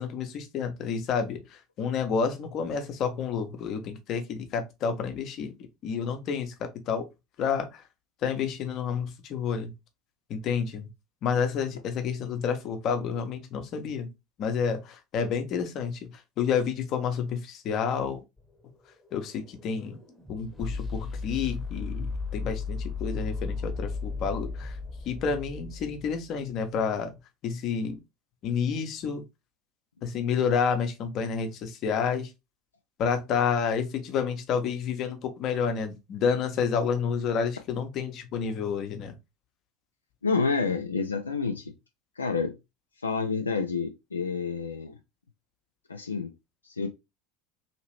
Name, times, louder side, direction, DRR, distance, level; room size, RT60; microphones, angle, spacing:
voice 1, 0.0-5.5 5.8-7.1 7.4-7.8 8.2-9.7 10.3-10.9 11.2-14.1 14.4-16.0 16.4-18.2 19.1-20.0 20.3-22.1 22.3-24.8 25.0-27.1 27.4-28.0 28.4-29.2 30.0-32.3 33.0-39.1, left 6 dB, 45° left, 0.8 m, -29 dB
sound 1, 18.4-26.5, left 4 dB, 5° left, 0.9 m, -35 dB
voice 2, 40.2-41.7 42.2-42.6 43.0-44.9 45.9-46.3 46.6-46.9, left 4 dB, 85° left, 0.4 m, -28 dB
2.9 x 2.8 x 3.0 m
figure-of-eight pair, 70°, 0 cm